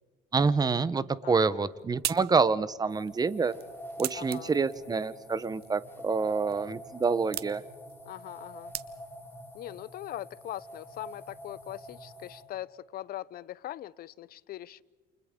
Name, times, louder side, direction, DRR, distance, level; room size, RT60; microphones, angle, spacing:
voice 1, 0.3-3.5 4.0-7.6, right 4 dB, 20° right, 16 dB, 0.9 m, -27 dB
voice 2, 1.2-1.6 4.1-4.5 8.1-8.7 9.5-14.8, left 13 dB, 60° left, 20 dB, 0.7 m, -41 dB
sound 1, 1.3-9.3, right 14 dB, 70° right, 0.8 m, -42 dB
sound 2, 2.9-12.4, equal, 15° left, 5.2 m, -47 dB
29.5 x 28.0 x 3.7 m, 1.5 s
cardioid pair, 110°, 17 cm